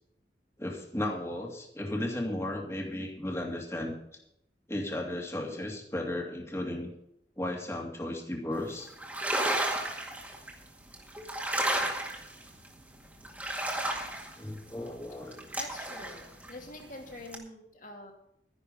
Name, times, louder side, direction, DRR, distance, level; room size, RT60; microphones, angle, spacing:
voice 1, 0.6-3.9 4.7-6.9 7.4-8.9 14.4-15.4, left 1 dB, 15° left, 1 dB, 2.3 m, -35 dB
sound 1, 8.9-10.5 10.9-12.7 13.2-17.0 17.3-17.4, right 1 dB, 10° right, 2.0 m, -32 dB
voice 2, 15.5-18.1, left 1 dB, 45° left, 2 dB, 2.7 m, -45 dB
12.5 x 10.5 x 5.5 m, 0.76 s
head